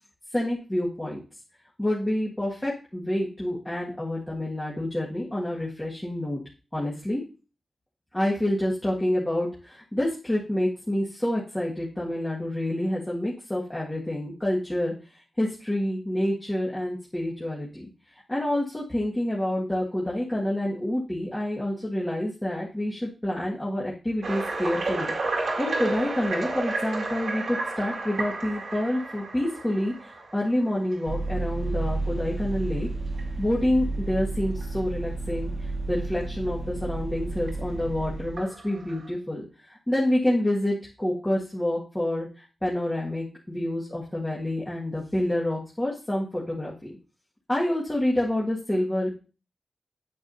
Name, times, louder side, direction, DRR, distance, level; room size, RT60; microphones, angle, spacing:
voice 1, 0.3-1.2 1.8-6.4 6.7-7.2 8.1-14.9 15.4-17.9 18.3-25.1 25.6-32.9 33.4-46.7 47.5-49.2, left 1 dB, 15° left, -5 dB, 1.9 m, -28 dB
sound 1, 24.2-31.1 31.7-31.9 32.5-32.6 33.1-33.2 34.6-34.7 37.5-37.6 38.4-39.1, right 2 dB, 80° right, 2.2 m, -32 dB
Vehicle, 31.1-38.4, right 2 dB, 60° right, 1.3 m, -31 dB
8.6 x 7.4 x 2.8 m, 0.34 s
cardioid pair, 60°, 0 cm